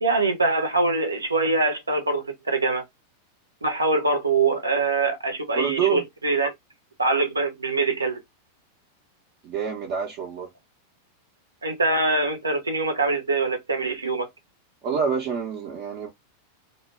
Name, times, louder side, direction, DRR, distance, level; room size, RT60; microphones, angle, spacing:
voice 1, 0.0-2.8 3.6-6.5 7.0-8.2 11.6-14.3, right 3 dB, 80° right, 0.8 m, -23 dB
voice 2, 5.5-6.0 9.4-10.5 14.8-16.1, right 7 dB, 45° right, 0.7 m, -27 dB
2.3 x 2.2 x 3.1 m
figure-of-eight pair, 90°, 0 cm